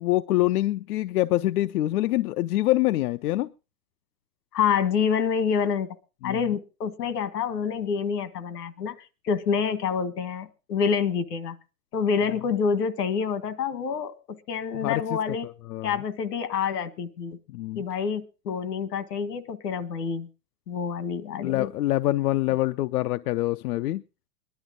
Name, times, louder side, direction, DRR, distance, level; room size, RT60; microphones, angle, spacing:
voice 1, 0.0-3.5 6.2-6.5 14.8-15.0 15.7-16.0 17.5-17.8 21.4-24.0, left 16 dB, 70° left, 11 dB, 0.6 m, -25 dB
voice 2, 4.5-5.9 6.2-9.0 9.2-11.6 11.9-15.5 15.8-17.4 17.8-20.3 20.7-21.7, left 6 dB, 90° left, 13 dB, 1.8 m, -27 dB
20.0 x 11.5 x 3.8 m, 0.32 s
supercardioid pair, 145°, 46 cm